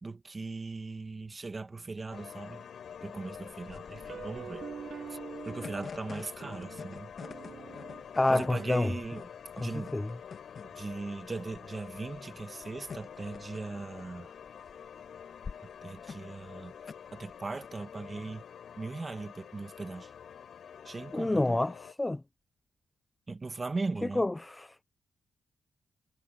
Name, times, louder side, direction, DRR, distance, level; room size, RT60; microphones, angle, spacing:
voice 1, 0.0-2.6 3.0-4.7 5.1-5.2 5.4-7.1 8.3-9.3 9.6-10.0 10.7-14.3 15.8-16.7 17.1-18.4 18.8-20.1 20.8-21.6 23.3-24.3, right 3 dB, 30° right, 1.6 m, -39 dB
sound 1, 2.1-21.9, left 8 dB, 70° left, 5.9 m, -47 dB
sound 2, 2.9-17.7, left 5 dB, 50° left, 1.9 m, -48 dB
sound 3, 3.9-6.0 6.4-9.1, right 7 dB, 70° right, 0.8 m, -45 dB
voice 2, 8.2-8.9 9.6-10.1 21.1-22.2 24.2-24.8, left 2 dB, 15° left, 0.5 m, -28 dB
cardioid pair, 90°, 0 cm